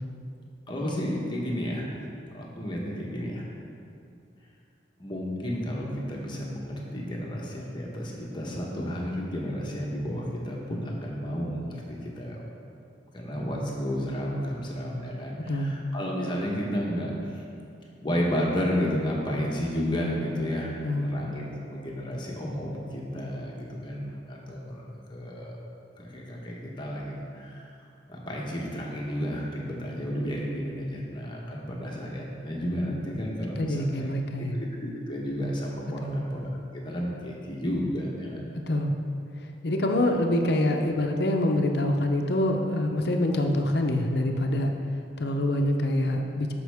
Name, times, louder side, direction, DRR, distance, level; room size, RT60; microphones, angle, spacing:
voice 1, 0.7-1.9 2.3-3.8 5.0-12.4 13.1-17.4 18.0-24.8 25.1-25.5 26.0-27.7 28.1-34.1 34.5-38.4, equal, 25° left, -3 dB, 1.1 m, -32 dB
voice 2, 20.8-21.1 33.6-34.6 36.0-36.2 38.5-38.9 39.6-44.7 45.2-46.5, left 1 dB, 60° left, 3 dB, 0.7 m, -25 dB
12.5 x 5.3 x 3.5 m, 2.5 s
head